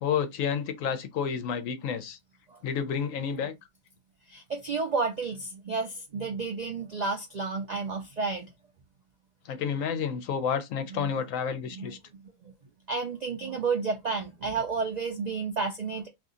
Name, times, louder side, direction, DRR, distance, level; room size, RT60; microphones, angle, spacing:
voice 1, 0.0-2.2 2.6-3.5 9.5-12.0, left 7 dB, 75° left, 1.0 m, -30 dB
voice 2, 4.3-8.5 11.0-11.1 11.7-12.0 12.9-16.1, right 4 dB, 80° right, 0.3 m, -31 dB
2.7 x 2.4 x 3.6 m
omnidirectional pair, 1.4 m